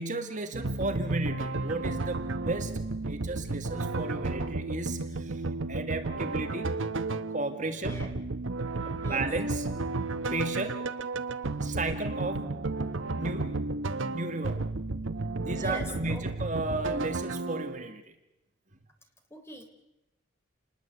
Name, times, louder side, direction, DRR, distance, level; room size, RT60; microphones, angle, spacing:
voice 1, 0.0-2.7 3.0-5.4 5.7-6.8 7.3-8.0 8.8-9.7 10.3-10.9 11.6-12.4 13.2-13.6 14.1-14.7 15.4-18.1, right 2 dB, 40° right, 6 dB, 1.8 m, -34 dB
sound 1, 0.5-17.9, right 3 dB, 80° right, 1.0 m, -33 dB
voice 2, 7.8-8.1 9.0-9.3 15.6-16.5 19.3-19.6, left 1 dB, 15° left, 4 dB, 3.7 m, -42 dB
28.5 x 20.5 x 8.2 m, 0.98 s
head